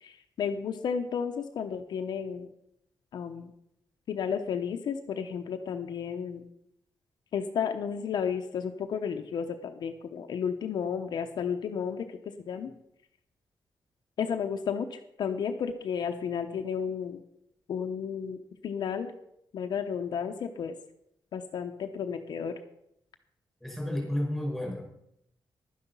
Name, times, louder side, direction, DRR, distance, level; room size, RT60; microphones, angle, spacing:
voice 1, 0.0-2.5 3.1-3.5 4.1-6.5 7.3-12.1 12.5-12.7 14.2-17.2 17.7-18.4 18.6-19.1 19.5-20.7 21.3-22.5, left 7 dB, 65° left, 5 dB, 0.9 m, -32 dB
voice 2, 23.6-24.8, left 1 dB, ahead, -2 dB, 5.3 m, -31 dB
11.5 x 9.9 x 5.5 m, 0.76 s
wide cardioid pair, 170°, 8 cm